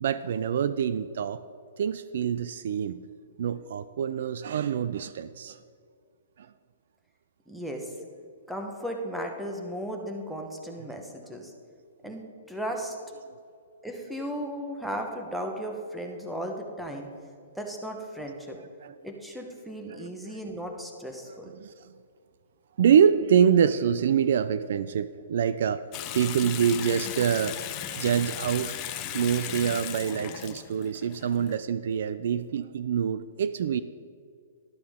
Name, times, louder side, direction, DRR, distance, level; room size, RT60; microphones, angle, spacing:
voice 1, 0.0-1.4 1.8-3.0 3.4-5.6 18.8-19.0 19.9-20.4 21.6-21.7 22.8-25.8 26.1-27.6 27.9-28.7 29.1-33.8, right 8 dB, 60° right, 14 dB, 0.4 m, -25 dB
voice 2, 7.5-7.9 8.5-11.5 12.0-12.9 13.8-17.1 17.6-18.6 19.0-21.5, equal, ahead, 2 dB, 1.1 m, -35 dB
Water tap faucet / Sink (filling or washing) / Bathtub (filling or washing), 25.9-31.6, left 11 dB, 25° left, 0.6 m, -36 dB
12.5 x 11.5 x 3.6 m, 2.3 s
hypercardioid pair, 160°, 0 cm